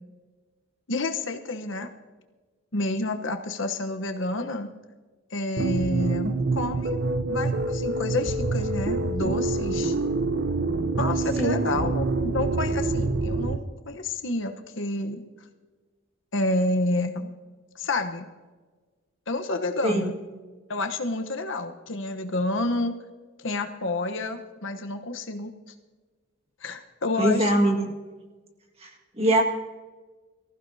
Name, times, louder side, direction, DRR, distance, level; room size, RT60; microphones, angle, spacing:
voice 1, 0.9-1.9 2.7-4.7 5.3-7.0 7.3-9.9 11.0-15.2 16.3-17.3 17.7-18.3 19.3-20.2 20.7-22.9 23.4-25.5 26.6-27.6, left 2 dB, 60° left, 6 dB, 1.0 m, -29 dB
sound 1, 5.6-13.6, right 3 dB, 50° right, 0.7 m, -26 dB
voice 2, 27.2-27.9 28.8-28.9 29.2-29.4, right 1 dB, 30° right, 2 dB, 1.8 m, -22 dB
23.5 x 15.0 x 2.8 m, 1.3 s
head